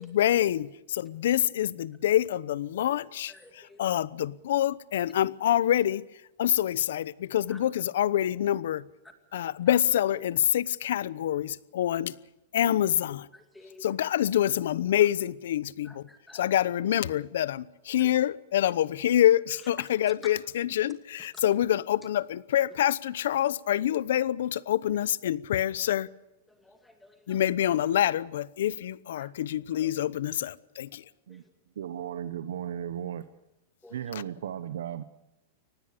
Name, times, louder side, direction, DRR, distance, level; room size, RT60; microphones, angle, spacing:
voice 1, 0.0-6.0 6.4-8.8 9.3-12.1 12.5-13.3 13.8-16.0 16.3-26.1 27.3-31.0 34.1-34.2, left 11 dB, 70° left, 0.9 m, -26 dB
voice 2, 3.3-3.8 6.6-6.7 7.5-7.6 9.7-9.8 13.3-13.9 15.8-16.5 18.0-18.1 19.6-19.9 22.7-22.8 23.4-23.5 26.5-27.4 29.2-29.3 29.8-29.9 31.3-31.5 33.8-34.0, left 2 dB, 5° left, 2.4 m, -52 dB
voice 3, 31.8-33.3 33.9-35.0, right 10 dB, 85° right, 1.1 m, -35 dB
24.5 x 19.5 x 6.9 m
supercardioid pair, 165°, 0 cm